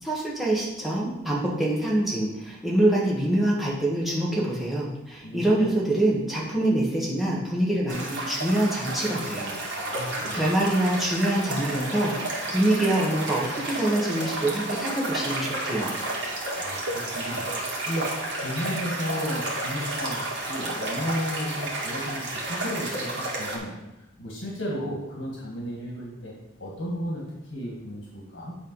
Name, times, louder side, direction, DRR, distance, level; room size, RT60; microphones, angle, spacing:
voice 1, 0.0-9.5 10.3-15.9, right 1 dB, ahead, -6 dB, 1.5 m, -25 dB
voice 2, 5.2-5.6 9.8-10.5 16.6-23.7 24.2-27.2 27.5-28.6, equal, 70° left, -3 dB, 1.7 m, -34 dB
sound 1, 7.9-23.6, right 2 dB, 65° right, 1.7 m, -31 dB
8.9 x 3.5 x 5.4 m, 0.93 s
head